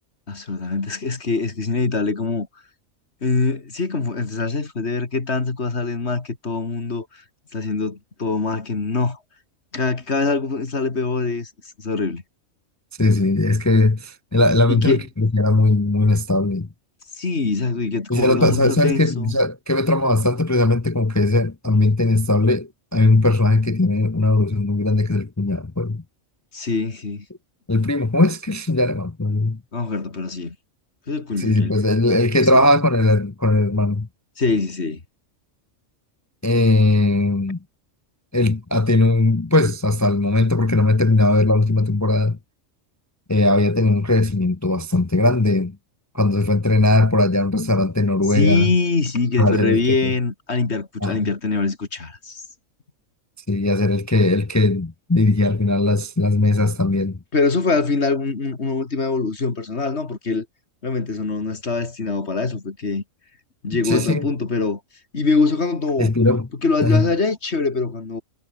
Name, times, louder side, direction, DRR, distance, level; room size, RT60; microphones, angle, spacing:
voice 1, 0.3-2.5 3.2-7.2 7.5-9.2 9.7-11.5 11.8-12.2 14.7-15.0 17.1-19.4 26.5-27.3 29.7-30.6 31.1-31.8 32.5-32.6 34.4-35.0 48.3-52.4 57.3-60.5 60.8-63.0 63.6-64.8 65.1-66.1 66.6-68.2, left 3 dB, 55° left, 2.8 m, -23 dB
voice 2, 13.0-16.7 18.1-26.0 27.7-29.6 31.4-34.1 36.4-37.6 38.3-42.4 43.3-45.8 46.1-48.7 49.4-50.1 51.0-51.2 53.5-57.2 63.8-64.3 66.0-66.5 66.8-67.0, left 2 dB, 25° left, 0.4 m, -19 dB
omnidirectional pair, 1.3 m